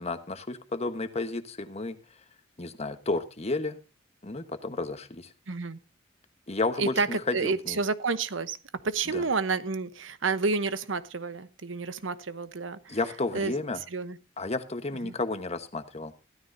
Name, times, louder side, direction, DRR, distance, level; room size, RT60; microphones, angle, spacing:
voice 1, 0.0-2.0 2.6-3.8 4.2-5.3 6.5-7.8 9.1-9.2 12.9-13.8 14.4-16.1, left 2 dB, 35° left, 9 dB, 1.2 m, -32 dB
voice 2, 5.5-5.8 6.8-8.6 8.8-13.0 13.3-13.5 13.9-14.2 15.0-15.1, right 4 dB, 85° right, 14 dB, 0.9 m, -30 dB
15.5 x 13.5 x 2.7 m, 0.29 s
head